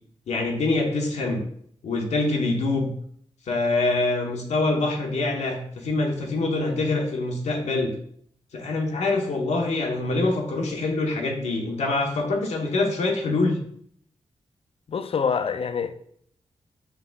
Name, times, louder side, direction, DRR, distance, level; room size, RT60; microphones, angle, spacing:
voice 1, 0.3-1.4 1.8-2.9 3.5-8.0 8.5-13.6, left 2 dB, 80° left, 0.8 m, -25 dB
voice 2, 14.9-15.9, left 6 dB, 55° left, 0.4 m, -26 dB
4.7 x 2.3 x 3.4 m
cardioid pair, 40°, 12 cm